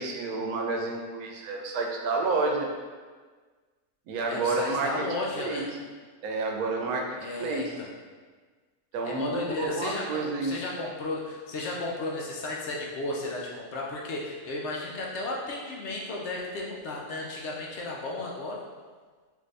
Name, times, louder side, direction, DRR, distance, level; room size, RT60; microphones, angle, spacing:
voice 1, 0.0-2.7 4.1-5.0 5.3-5.6 6.2-7.0 7.4-7.7 8.9-10.6, right 3 dB, 75° right, 1 dB, 1.0 m, -29 dB
voice 2, 4.3-5.7 7.2-7.9 9.0-18.6, left 2 dB, 65° left, -2 dB, 0.7 m, -34 dB
3.3 x 2.5 x 3.2 m, 1.4 s
omnidirectional pair, 1.6 m